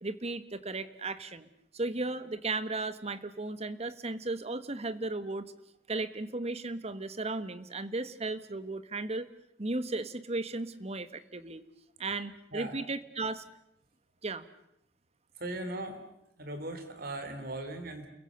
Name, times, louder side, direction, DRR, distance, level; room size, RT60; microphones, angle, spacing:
voice 1, 0.0-1.5 1.7-5.5 5.9-9.3 9.6-11.6 12.0-13.4 14.2-14.4, right 2 dB, 35° right, 13 dB, 1.4 m, -35 dB
voice 2, 15.4-16.0 16.4-18.1, right 2 dB, 60° right, 8 dB, 3.9 m, -38 dB
29.5 x 22.0 x 6.8 m, 0.76 s
head